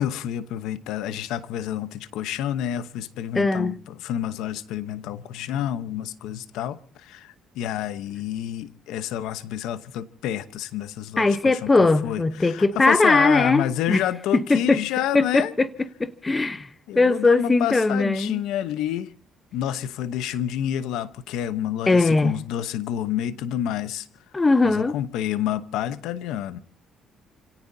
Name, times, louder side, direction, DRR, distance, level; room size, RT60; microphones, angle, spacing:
voice 1, 0.0-15.5 16.9-19.1 19.5-24.1 24.6-26.6, left 11 dB, 90° left, 0.9 m, -29 dB
voice 2, 3.3-3.8 11.2-14.0 14.3-14.8 15.1-15.7 16.0-16.7 16.9-18.4 21.9-22.4 24.3-24.9, left 3 dB, 20° left, 1.0 m, -20 dB
29.5 x 17.5 x 2.7 m
cardioid pair, 115°, 0 cm